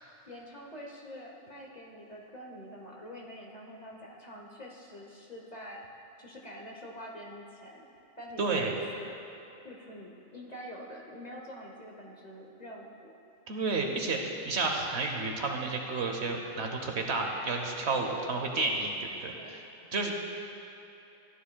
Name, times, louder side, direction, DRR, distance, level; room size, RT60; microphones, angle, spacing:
voice 1, 0.3-5.8 6.2-7.8 8.2-9.1 9.6-13.1 19.3-19.5, equal, 35° left, -2 dB, 0.9 m, -46 dB
voice 2, 8.4-8.7 13.5-19.6 19.9-20.1, right 3 dB, 60° right, 2 dB, 1.1 m, -31 dB
14.0 x 9.9 x 2.2 m, 3.0 s
omnidirectional pair, 1.3 m